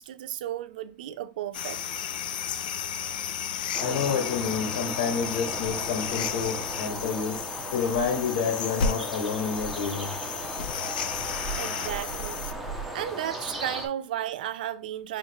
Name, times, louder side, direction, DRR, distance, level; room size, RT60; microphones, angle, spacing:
voice 1, 0.0-2.0 11.5-12.4 12.9-15.2, right 11 dB, 80° right, 0.5 m, -34 dB
sound 1, 1.5-12.5, left 7 dB, 90° left, 0.5 m, -33 dB
sound 2, 3.7-13.9, right 2 dB, 5° right, 0.8 m, -36 dB
voice 2, 3.8-7.4 7.7-10.1, left 6 dB, 75° left, 1.3 m, -29 dB
5.7 x 2.5 x 2.9 m
supercardioid pair, 150°, 5 cm